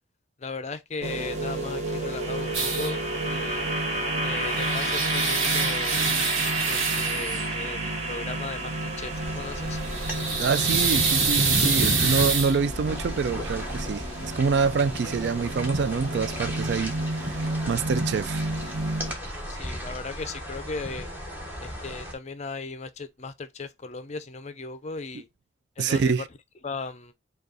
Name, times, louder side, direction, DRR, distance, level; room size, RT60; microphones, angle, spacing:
voice 1, 0.4-3.6 4.2-6.1 6.7-9.8 19.5-21.1 21.6-25.3 25.8-26.1 26.6-27.1, left 3 dB, 35° left, 0.5 m, -37 dB
sound 1, 1.0-19.1, right 2 dB, 35° right, 1.1 m, -31 dB
sound 2, 2.5-2.9 4.2-7.5 9.7-12.6, right 4 dB, 85° right, 1.1 m, -26 dB
sound 3, 8.9-22.1, equal, 10° right, 1.0 m, -37 dB
voice 2, 10.4-18.5 25.1-25.2 25.8-26.3, right 5 dB, 60° right, 0.3 m, -26 dB
5.2 x 2.4 x 3.9 m
head